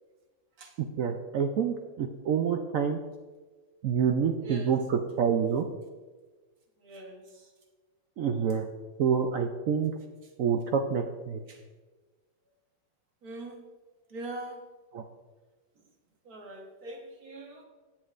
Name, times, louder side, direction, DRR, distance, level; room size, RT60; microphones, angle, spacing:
voice 1, 1.0-3.0 3.8-5.6 8.2-8.7 9.0-9.9 10.4-11.4 14.9-15.0, right 7 dB, 75° right, 5 dB, 0.7 m, -27 dB
voice 2, 6.8-7.2 13.2-13.6 14.1-14.6 16.3-17.6, right 1 dB, 55° right, 2 dB, 1.6 m, -41 dB
17.5 x 7.4 x 2.5 m, 1.3 s
omnidirectional pair, 2.1 m